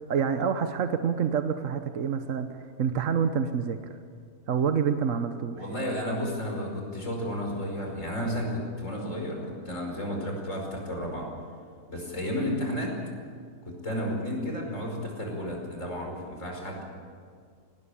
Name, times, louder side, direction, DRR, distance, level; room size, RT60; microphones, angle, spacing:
voice 1, 0.1-2.5 2.8-3.8 4.5-5.6, right 7 dB, 65° right, 8 dB, 1.3 m, -27 dB
voice 2, 5.5-11.3 11.9-12.9 13.6-16.8, equal, 60° left, 0 dB, 5.6 m, -32 dB
20.5 x 19.0 x 8.5 m, 2.1 s
omnidirectional pair, 1.5 m